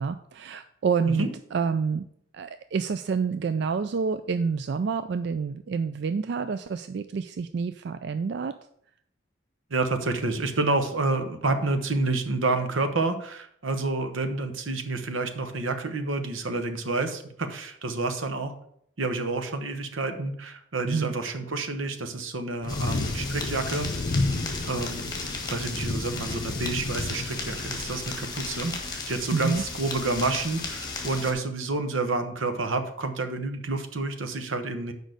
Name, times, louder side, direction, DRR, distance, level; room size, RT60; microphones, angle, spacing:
voice 1, 0.0-2.1 2.3-8.5 20.9-21.1 29.3-29.7, right 5 dB, 55° right, 10 dB, 0.3 m, -28 dB
voice 2, 9.7-18.5 19.0-23.9 24.7-25.1 25.5-34.9, right 3 dB, 85° right, 8 dB, 1.0 m, -29 dB
sound 1, 22.6-31.3, left 2 dB, 45° left, 0.6 m, -33 dB
sound 2, 22.7-31.3, left 4 dB, 20° left, 1.5 m, -36 dB
6.3 x 5.1 x 6.6 m, 0.68 s
head